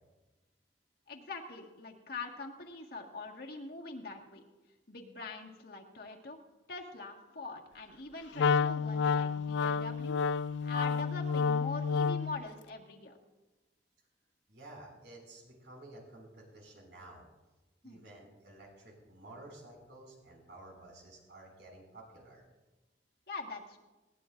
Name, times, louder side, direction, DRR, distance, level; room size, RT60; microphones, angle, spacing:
voice 1, 1.1-4.4 4.9-6.4 6.7-13.2 17.8-18.0 23.3-23.8, left 3 dB, 60° left, 1 dB, 1.8 m, -43 dB
Wind instrument woodwind instrument, 8.4-12.4, left 5 dB, 80° left, 0.3 m, -30 dB
voice 2, 14.5-17.2 17.8-22.4, right 2 dB, 75° right, -1 dB, 5.9 m, -52 dB
20.5 x 17.5 x 2.6 m, 1.1 s
head